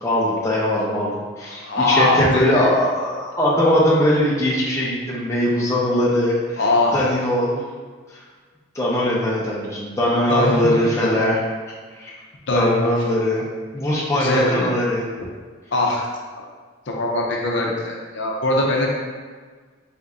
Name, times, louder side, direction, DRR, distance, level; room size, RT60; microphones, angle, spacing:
voice 1, 0.0-6.6 6.9-7.6 8.7-11.4 11.9-12.1 12.5-13.4 13.7-15.1, left 1 dB, 15° left, -6 dB, 0.6 m, -20 dB
voice 2, 1.5-2.7 6.6-7.1 10.3-10.7 11.0-11.2 12.5-12.9 14.1-14.7 15.7-16.1 16.9-18.9, left 2 dB, 60° left, -1 dB, 0.6 m, -21 dB
4.2 x 2.6 x 3.5 m, 1.5 s
head